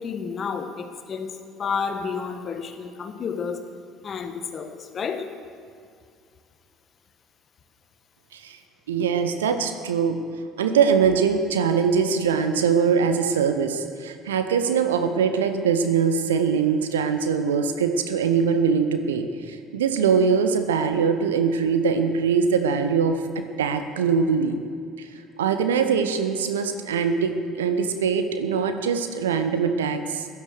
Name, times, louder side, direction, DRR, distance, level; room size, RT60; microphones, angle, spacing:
voice 1, 0.0-3.6 4.0-5.3, left 6 dB, 40° left, 7 dB, 1.5 m, -31 dB
voice 2, 8.9-10.2 10.6-24.6 25.0-25.1 25.4-30.3, right 6 dB, 75° right, 8 dB, 1.0 m, -22 dB
16.5 x 11.0 x 6.5 m, 2.3 s
figure-of-eight pair, 60°, 0 cm